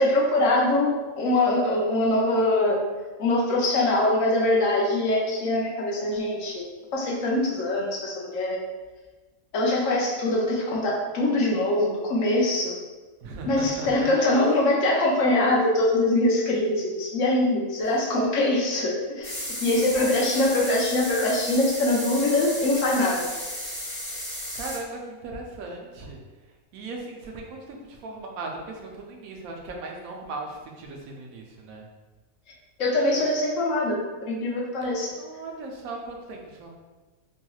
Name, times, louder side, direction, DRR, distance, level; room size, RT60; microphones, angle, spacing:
voice 1, 0.0-2.8 3.2-6.6 6.9-8.6 9.5-12.7 13.5-23.3 32.8-35.1, left 1 dB, 65° left, -3 dB, 0.9 m, -23 dB
voice 2, 13.2-14.4 20.0-20.5 24.5-26.2 26.7-31.9 35.2-36.7, right 2 dB, 75° right, 0 dB, 1.0 m, -37 dB
sound 1, 19.2-24.8, equal, 40° left, 1.6 m, -34 dB
3.0 x 3.0 x 2.3 m, 1.3 s
omnidirectional pair, 1.5 m